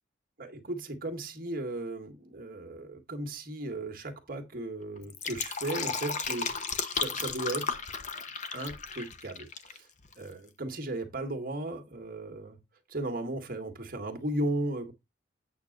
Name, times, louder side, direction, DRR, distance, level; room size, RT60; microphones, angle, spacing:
voice 1, 0.4-6.5 6.9-7.8 8.5-9.9 10.1-12.6 12.9-14.9, right 1 dB, 45° right, 1.7 m, -36 dB
Fill (with liquid), 5.0-9.8 10.0-10.1, left 5 dB, 35° left, 0.9 m, -34 dB
8.6 x 3.7 x 6.6 m
head